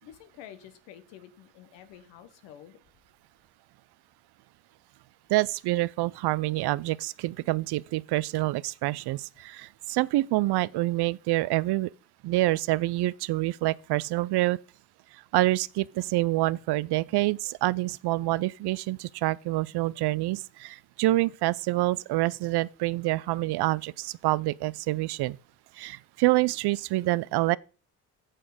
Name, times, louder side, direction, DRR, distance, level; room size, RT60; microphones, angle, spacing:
voice 1, 0.0-2.8, left 10 dB, 85° left, 1.3 m, -49 dB
voice 2, 5.3-11.9 12.2-14.6 15.1-25.4 25.7-27.6, right 18 dB, 70° right, 0.5 m, -27 dB
8.7 x 7.1 x 5.0 m
supercardioid pair, 70°, 42 cm